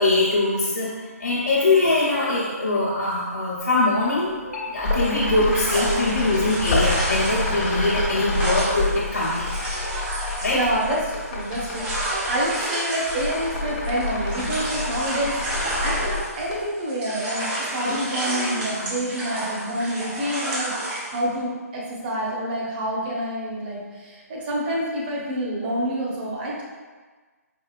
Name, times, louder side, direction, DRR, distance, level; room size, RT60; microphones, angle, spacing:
voice 1, 0.0-9.5 10.4-10.6 17.8-18.0, left 2 dB, 75° left, -8 dB, 0.9 m, -22 dB
sound 1, 4.4-4.5 4.8-12.7 13.0-16.7, left 2 dB, 40° left, 0.9 m, -28 dB
sound 2, 5.5-16.6 16.9-21.2, right 1 dB, 15° right, 0.6 m, -31 dB
voice 2, 10.5-26.6, right 1 dB, 35° right, -4 dB, 1.0 m, -28 dB
4.7 x 2.8 x 2.4 m, 1.4 s
figure-of-eight pair, 145°, 9 cm